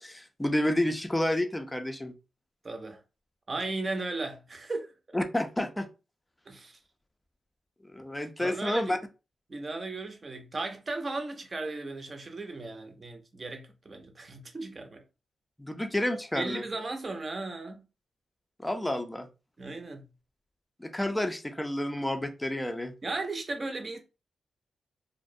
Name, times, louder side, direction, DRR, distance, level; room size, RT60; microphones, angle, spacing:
voice 1, 0.0-2.1 5.1-5.9 7.9-9.0 15.6-16.6 18.6-19.3 20.8-22.9, left 1 dB, 10° left, 0.4 m, -30 dB
voice 2, 2.6-3.0 3.5-5.2 6.5-6.8 8.4-9.0 9.5-15.0 16.3-17.9 19.6-20.0 23.0-24.0, right 3 dB, 40° right, 0.6 m, -36 dB
2.3 x 2.0 x 2.6 m
cardioid pair, 70°, 0 cm